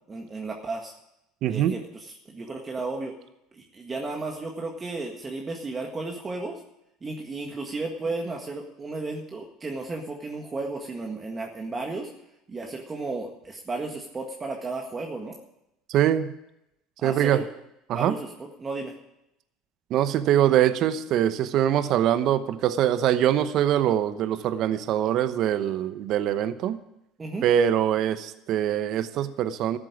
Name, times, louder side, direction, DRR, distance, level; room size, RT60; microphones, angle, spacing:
voice 1, 0.1-0.9 1.5-3.1 3.5-6.6 7.0-12.1 12.5-15.4 17.0-17.4 17.9-18.3 18.6-18.9 27.2-27.5, right 3 dB, 25° right, 1 dB, 1.8 m, -33 dB
voice 2, 1.4-1.7 15.9-16.3 17.0-17.4 17.9-18.2 19.9-26.8 27.4-29.8, right 10 dB, 60° right, 12 dB, 0.9 m, -23 dB
13.5 x 7.5 x 9.8 m, 0.84 s
supercardioid pair, 90°, 0 cm